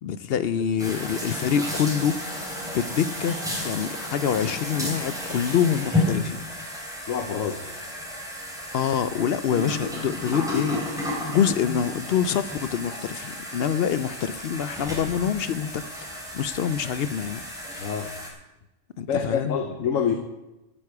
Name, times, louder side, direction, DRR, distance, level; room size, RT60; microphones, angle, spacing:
voice 1, 0.0-6.4 8.7-17.4 17.7-17.9 19.0-19.6, left 8 dB, 65° left, 0.6 m, -26 dB
sound 1, 0.8-18.3, left 1 dB, 5° right, 3.2 m, -32 dB
voice 2, 7.1-7.6 17.8-18.1 19.1-20.1, left 7 dB, 85° left, 1.3 m, -26 dB
14.5 x 9.5 x 4.8 m
omnidirectional pair, 1.3 m